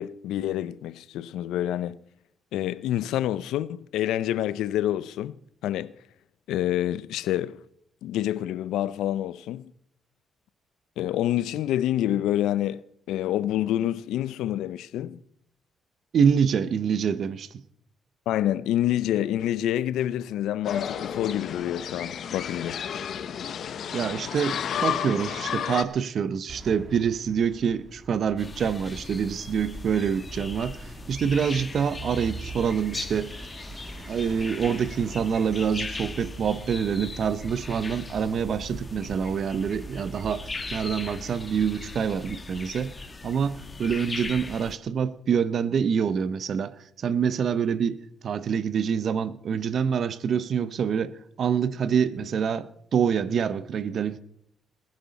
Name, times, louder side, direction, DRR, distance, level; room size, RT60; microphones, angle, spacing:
voice 1, 0.0-2.0 2.5-5.9 6.5-7.6 8.0-9.7 11.0-12.8 13.1-15.2 18.3-22.8, left 12 dB, 85° left, 0.5 m, -27 dB
voice 2, 16.1-17.6 23.9-33.4 34.0-42.9 43.2-46.7 47.0-54.2, right 7 dB, 60° right, 0.8 m, -26 dB
sound 1, 20.6-25.8, left 8 dB, 65° left, 0.9 m, -31 dB
sound 2, 26.5-42.0, right 3 dB, 40° right, 2.3 m, -43 dB
sound 3, 28.4-44.8, left 3 dB, 25° left, 1.2 m, -39 dB
20.0 x 10.5 x 4.1 m
cardioid pair, 90°, 0 cm